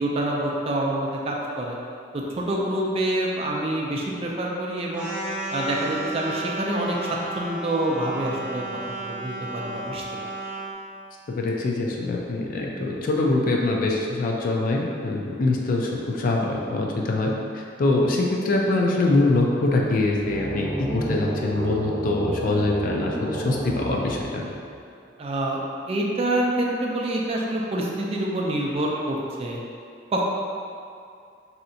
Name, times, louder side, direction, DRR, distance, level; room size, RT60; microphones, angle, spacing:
voice 1, 0.0-1.8 2.1-5.1 5.5-8.6 9.0-10.0 25.2-25.6 25.9-29.6 30.1-30.2, right 1 dB, 35° right, -2 dB, 0.4 m, -26 dB
sound 1, 4.9-10.7, right 2 dB, 5° right, 0.8 m, -33 dB
voice 2, 11.3-24.4, left 2 dB, 50° left, -1 dB, 0.4 m, -24 dB
sound 2, 20.1-24.8, right 1 dB, 80° left, 0.8 m, -31 dB
3.2 x 2.8 x 2.6 m, 2.4 s
head